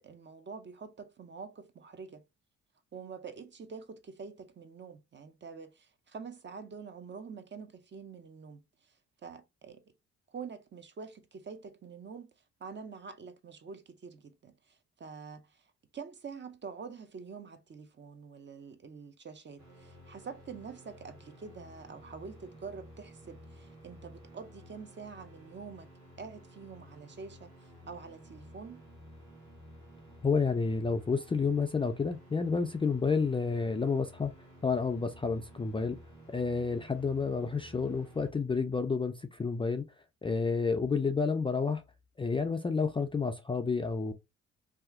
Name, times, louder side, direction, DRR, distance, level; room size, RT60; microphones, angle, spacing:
voice 1, 0.0-2.2 2.9-8.9 9.2-9.8 10.3-12.3 12.6-15.7 15.9-25.9 26.2-28.8, right 5 dB, 35° right, 0.6 m, -46 dB
sound 1, 19.6-38.3, equal, 70° right, 1.5 m, -53 dB
voice 2, 30.2-34.3 34.6-36.0 36.3-39.9 40.2-41.8 42.2-44.1, left 4 dB, 20° left, 0.3 m, -30 dB
2.7 x 2.4 x 3.5 m
cardioid pair, 90°, 30 cm